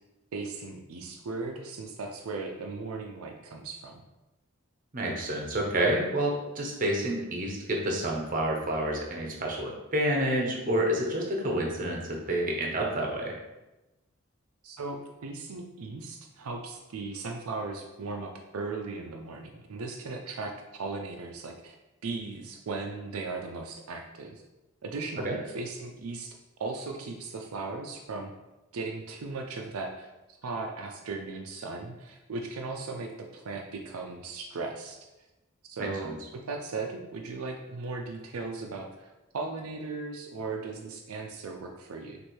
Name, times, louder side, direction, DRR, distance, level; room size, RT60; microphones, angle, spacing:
voice 1, 0.3-4.0 14.6-20.5 20.8-21.7 22.0-24.4 24.8-28.3 28.7-30.1 30.4-35.0 35.7-42.2, right 3 dB, 80° right, 2 dB, 0.5 m, -37 dB
voice 2, 4.9-13.3 25.2-25.4 35.8-36.1, right 1 dB, 35° right, 0 dB, 0.7 m, -29 dB
6.2 x 2.6 x 3.0 m, 1.0 s
head